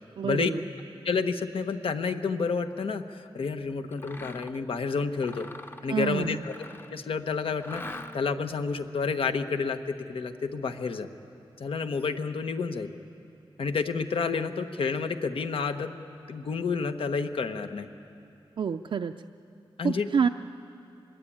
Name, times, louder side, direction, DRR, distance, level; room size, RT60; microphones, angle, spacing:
voice 1, 0.2-0.6 5.9-6.4 18.6-19.1 19.8-20.3, right 6 dB, 65° right, 6 dB, 0.5 m, -27 dB
voice 2, 1.0-5.5 5.8-6.5 6.9-11.1 11.6-12.9 13.6-15.9 16.3-17.9 19.8-20.1, left 5 dB, 70° left, 7 dB, 1.2 m, -30 dB
Mechanisms, 3.9-4.6 5.1-7.0 7.6-8.4, left 2 dB, 25° left, 0.9 m, -43 dB
24.0 x 21.5 x 8.7 m, 2.7 s
wide cardioid pair, 105°, 9 cm